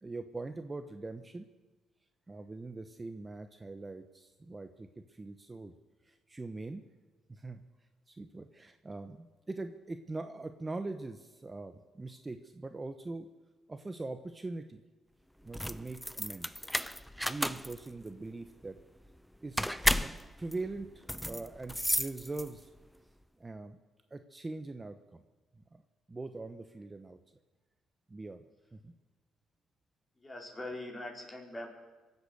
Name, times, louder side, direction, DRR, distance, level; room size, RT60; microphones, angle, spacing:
voice 1, 0.0-1.5 2.3-5.7 6.0-6.8 7.3-7.6 8.1-13.3 13.7-14.8 15.4-16.7 17.2-18.8 19.4-19.7 20.0-22.7 23.4-23.8 24.1-25.2 25.7-25.8 26.1-27.2 28.1-28.4 28.7-28.9, right 3 dB, 20° right, 8 dB, 0.9 m, -42 dB
sound 1, 15.4-22.8, equal, ahead, 0.6 m, -34 dB
voice 2, 30.2-31.7, left 1 dB, 25° left, 1 dB, 4.3 m, -42 dB
23.5 x 8.2 x 6.8 m, 1.2 s
cardioid pair, 80°, 0 cm